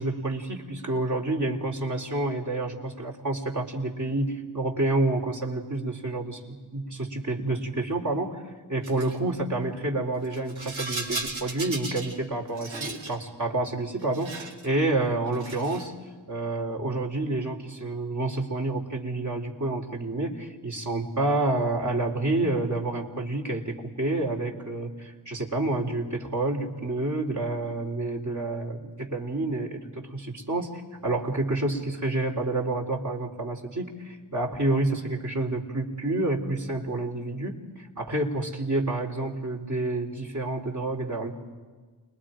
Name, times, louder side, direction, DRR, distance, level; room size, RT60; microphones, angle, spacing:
voice 1, 0.0-8.4 8.7-15.9 16.3-30.7 31.0-41.3, right 2 dB, 40° right, 1 dB, 3.6 m, -29 dB
Rattle, 8.8-9.2 10.2-12.2 12.5-13.2 14.0-14.7 15.3-15.9, right 3 dB, 70° right, 3.0 m, -36 dB
29.0 x 21.5 x 5.1 m, 1.4 s
cardioid pair, 45°, 48 cm